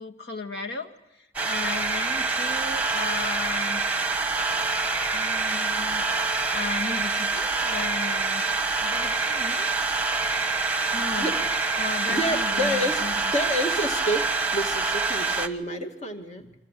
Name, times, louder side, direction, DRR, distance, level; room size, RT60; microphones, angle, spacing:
voice 1, 0.0-3.8 5.1-8.4 8.8-9.7 10.9-11.3 11.7-13.2, left 3 dB, 70° left, 4 dB, 2.0 m, -36 dB
sound 1, 1.4-15.5, right 3 dB, 10° right, 1.2 m, -26 dB
voice 2, 12.1-13.1 13.3-14.2 14.5-16.5, equal, 40° left, 4 dB, 2.4 m, -28 dB
28.5 x 25.5 x 7.6 m, 0.95 s
head